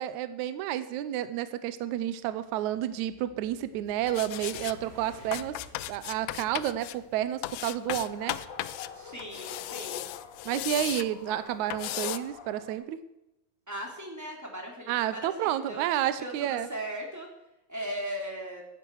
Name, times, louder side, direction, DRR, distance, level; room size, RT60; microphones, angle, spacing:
voice 1, 0.0-5.6 5.9-8.4 10.5-13.0 14.9-16.7, right 12 dB, 75° right, 13 dB, 1.8 m, -30 dB
sound 1, 2.0-7.4, right 1 dB, 30° right, 3.4 m, -54 dB
sound 2, 4.1-4.8 5.3-7.0 7.4-8.9 9.2-11.1 11.7-12.2, left 15 dB, 80° left, 1.8 m, -36 dB
sound 3, 4.3-12.7, left 5 dB, 60° left, 3.1 m, -49 dB
voice 2, 8.9-10.1 13.7-15.8 16.2-17.3 17.7-18.6, equal, 5° right, 0 dB, 2.7 m, -38 dB
15.0 x 12.0 x 4.7 m, 0.92 s
omnidirectional pair, 4.0 m